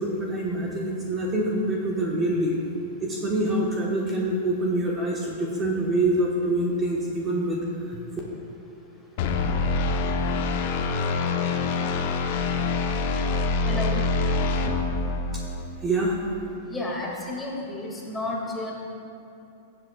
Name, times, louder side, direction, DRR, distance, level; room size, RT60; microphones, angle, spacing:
voice 1, 0.0-2.6 3.0-8.0 15.3-15.4 15.8-16.2, right 1 dB, 20° right, -3 dB, 1.3 m, -25 dB
sound 1, 9.2-15.7, left 3 dB, 55° left, 0.9 m, -25 dB
voice 2, 13.7-14.0 16.6-18.7, left 2 dB, 10° left, -3 dB, 2.2 m, -32 dB
16.5 x 7.9 x 2.4 m, 2.9 s
hypercardioid pair, 105°, 0 cm